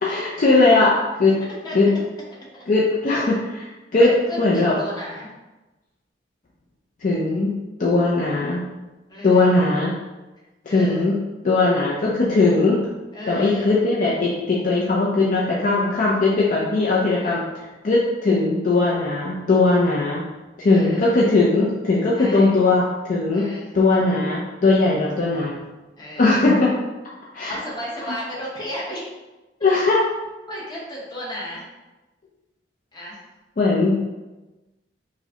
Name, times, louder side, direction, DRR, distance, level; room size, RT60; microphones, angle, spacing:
voice 1, 0.0-1.4 1.7-1.9 2.7-4.7 7.0-7.5 7.8-8.7 9.2-9.9 10.7-11.2 11.4-12.8 13.3-20.2 20.6-23.5 23.7-25.6 26.2-26.7 27.3-27.6 28.0-28.1 29.6-30.0 33.6-34.0, left 3 dB, 50° left, -5 dB, 0.5 m, -19 dB
voice 2, 4.0-5.3 9.1-9.5 10.7-11.1 13.1-13.7 17.2-17.4 20.7-21.0 22.2-22.5 23.3-23.7 26.0-26.3 27.5-29.1 30.5-31.6 32.9-33.2, equal, 25° left, -6 dB, 0.9 m, -33 dB
4.7 x 2.1 x 2.8 m, 1.1 s
head